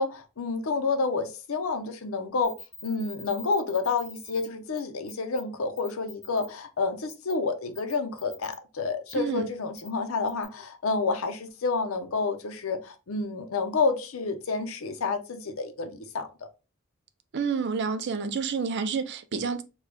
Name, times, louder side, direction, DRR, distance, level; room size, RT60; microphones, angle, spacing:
voice 1, 0.0-2.5 2.8-16.3, left 4 dB, 75° left, 0.6 m, -29 dB
sound 1, 2.4-4.5 4.8-4.9 5.1-5.4 5.8-6.5 7.1-7.3 7.7-8.6 9.1-9.2 9.8-9.9 10.3-10.4, left 3 dB, 10° left, 1.2 m, -45 dB
voice 2, 9.1-9.5 17.3-19.6, right 5 dB, 55° right, 0.4 m, -29 dB
4.7 x 2.3 x 2.2 m
head